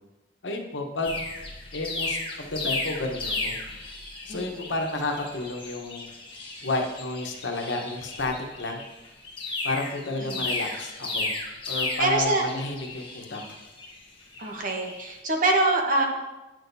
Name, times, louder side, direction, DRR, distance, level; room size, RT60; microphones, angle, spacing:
voice 1, 0.4-1.1 1.7-3.5 4.2-6.1 6.6-8.8 9.6-11.3 11.7-13.4, left 2 dB, 85° left, 2 dB, 1.0 m, -31 dB
sound 1, 1.0-15.0, left 2 dB, 30° left, 1.2 m, -34 dB
voice 2, 4.3-4.6 12.0-12.4 14.4-16.0, right 2 dB, 50° right, 1 dB, 1.1 m, -24 dB
8.8 x 6.3 x 2.7 m, 1.1 s
head